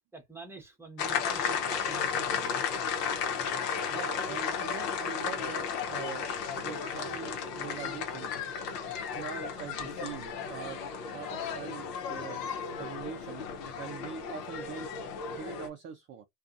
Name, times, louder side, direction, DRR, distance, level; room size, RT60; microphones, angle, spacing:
voice 1, 0.1-2.5, right 3 dB, 5° right, 0.8 m, -47 dB
sound 1, 1.0-15.7, left 6 dB, 80° left, 1.0 m, -34 dB
voice 2, 3.9-8.4 9.1-10.8 11.1-12.4 12.8-13.4 13.8-14.9 15.3-16.3, right 7 dB, 25° right, 0.4 m, -43 dB
2.6 x 2.3 x 2.4 m
hypercardioid pair, 105°, 48 cm